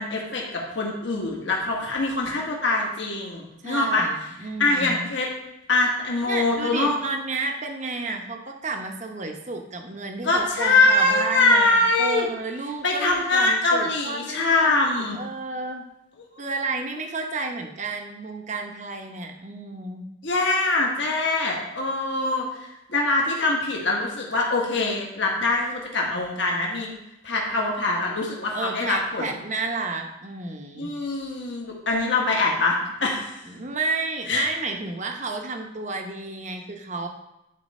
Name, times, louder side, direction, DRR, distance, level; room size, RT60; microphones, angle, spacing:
voice 1, 0.0-4.1 4.4-5.3 5.7-7.0 10.2-12.3 12.8-15.2 16.4-16.5 20.2-26.9 27.2-29.3 30.8-33.3 34.3-34.5, left 2 dB, 60° left, -1 dB, 1.6 m, -23 dB
voice 2, 3.6-5.1 6.3-14.8 15.1-15.8 16.4-20.1 28.5-30.9 33.4-37.1, right 3 dB, 35° right, 4 dB, 0.9 m, -31 dB
10.0 x 4.6 x 4.2 m, 0.89 s
head